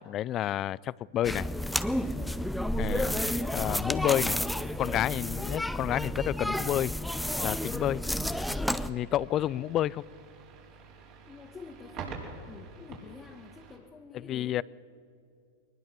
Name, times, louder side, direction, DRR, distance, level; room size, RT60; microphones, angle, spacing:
voice 1, 0.0-1.5 2.8-3.1 3.5-4.4 4.8-6.9 7.4-8.0 8.9-10.0 14.1-14.6, left 12 dB, 35° left, 0.4 m, -30 dB
sound 1, 1.2-8.9, left 1 dB, ahead, 0.7 m, -31 dB
sound 2, 7.1-13.8, right 5 dB, 50° right, 4.7 m, -47 dB
voice 2, 11.2-14.6, left 4 dB, 20° left, 1.5 m, -49 dB
22.0 x 20.0 x 6.0 m
hypercardioid pair, 105°, 0 cm